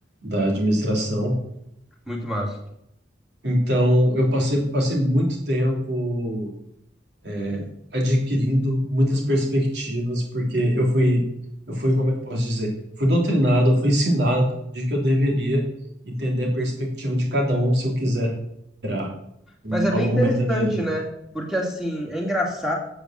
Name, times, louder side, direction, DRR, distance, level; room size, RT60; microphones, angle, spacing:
voice 1, 0.2-1.3 3.4-6.5 7.2-7.6 7.9-11.2 11.7-12.7 13.0-15.6 16.0-18.3 18.8-19.1 19.6-20.8, equal, 65° right, 0 dB, 3.2 m, -22 dB
voice 2, 2.1-2.6 19.7-21.0 21.3-22.8, equal, ahead, -1 dB, 2.4 m, -25 dB
8.8 x 7.9 x 7.5 m, 0.79 s
head